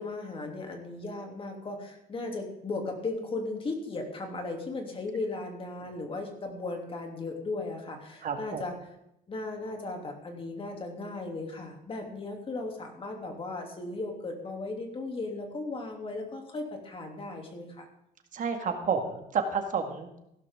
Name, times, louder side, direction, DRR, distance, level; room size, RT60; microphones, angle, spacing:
voice 1, 0.0-8.7 9.3-17.9, left 3 dB, 30° left, 3 dB, 2.9 m, -36 dB
voice 2, 8.2-8.6 18.3-20.2, right 6 dB, 50° right, 5 dB, 1.9 m, -30 dB
16.0 x 12.0 x 3.7 m, 0.81 s
cardioid pair, 110°, 17 cm